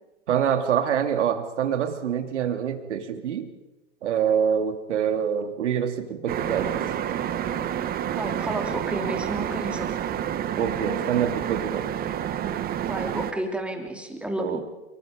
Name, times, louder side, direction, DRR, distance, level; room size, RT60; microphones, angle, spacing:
voice 1, 0.3-3.5 4.0-6.9 10.6-11.9 14.4-14.6, right 8 dB, 80° right, 7 dB, 2.8 m, -25 dB
sound 1, 6.3-13.3, right 10 dB, 25° right, 1.5 m, -29 dB
voice 2, 8.2-10.0 12.9-14.6, right 1 dB, 5° right, 3 dB, 3.2 m, -31 dB
25.5 x 23.5 x 5.2 m, 1.0 s
hypercardioid pair, 125°, 35 cm